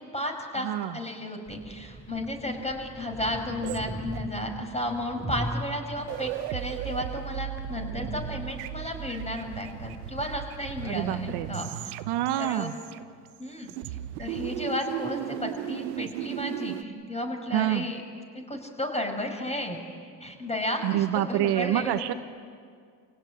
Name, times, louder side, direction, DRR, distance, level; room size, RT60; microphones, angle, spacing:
voice 1, 0.1-11.9 12.4-12.7 13.4-13.7 14.2-18.0 18.5-19.8 20.2-21.9, left 1 dB, 15° left, 3 dB, 5.8 m, -33 dB
voice 2, 0.6-1.0 10.8-11.5 12.1-12.7 17.5-17.8 20.8-22.1, right 13 dB, 65° right, 9 dB, 1.2 m, -27 dB
sound 1, 1.5-10.4, right 1 dB, 30° right, 3.1 m, -40 dB
sound 2, 3.6-4.6 5.6-5.7 6.0-13.4 13.7-16.8, right 13 dB, 85° right, 1.0 m, -36 dB
27.5 x 17.5 x 9.8 m, 2.1 s
hypercardioid pair, 70°, 42 cm